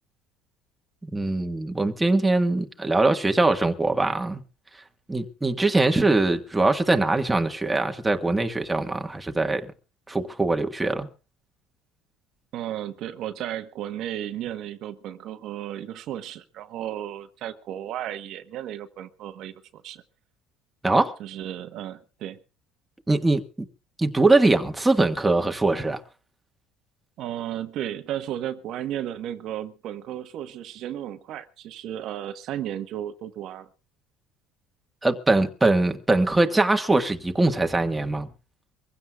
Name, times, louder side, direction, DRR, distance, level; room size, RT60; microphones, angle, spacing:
voice 1, 1.0-4.4 5.1-9.7 10.1-11.1 20.8-21.2 23.1-23.7 24.0-26.0 35.0-38.3, right 2 dB, 10° right, 1.4 m, -22 dB
voice 2, 12.5-20.0 21.2-22.4 27.2-33.7, right 11 dB, 60° right, 1.1 m, -34 dB
24.5 x 16.0 x 2.3 m
cardioid pair, 115°, 0 cm